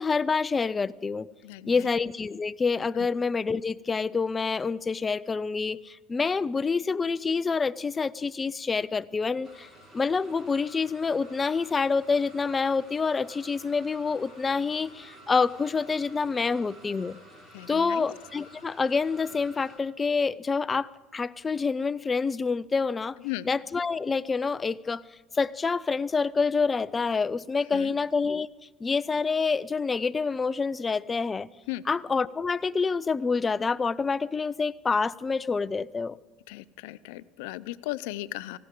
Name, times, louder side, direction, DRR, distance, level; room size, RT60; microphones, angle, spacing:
voice 1, 0.0-1.3 1.7-9.7 9.9-17.2 17.7-23.2 23.4-25.0 25.3-28.5 28.8-31.5 31.9-36.2, left 4 dB, 20° left, 18 dB, 0.4 m, -27 dB
voice 2, 1.4-1.7 3.0-3.1 17.5-18.1 23.2-23.5 27.7-27.9 31.7-31.8 36.5-38.6, left 17 dB, 85° left, 15 dB, 0.5 m, -36 dB
sound 1, 9.4-19.8, right 1 dB, 20° right, 4.7 m, -51 dB
19.0 x 16.5 x 3.8 m, 1.3 s
supercardioid pair, 120°, 0 cm